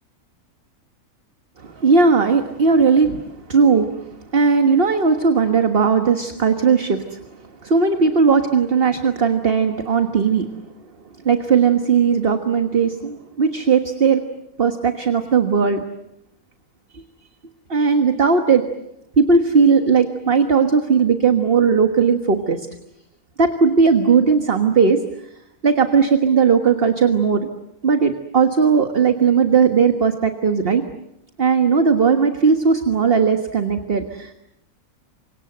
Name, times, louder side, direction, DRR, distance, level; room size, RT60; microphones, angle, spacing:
voice 1, 1.6-7.2 7.6-10.5 11.2-14.2 14.6-15.8 16.9-17.0 17.7-18.6 19.2-22.7 23.4-25.0 25.6-27.5 27.8-30.8 31.4-34.3, right 5 dB, 40° right, 6 dB, 1.6 m, -17 dB
29.0 x 25.5 x 7.9 m, 0.85 s
omnidirectional pair, 1.6 m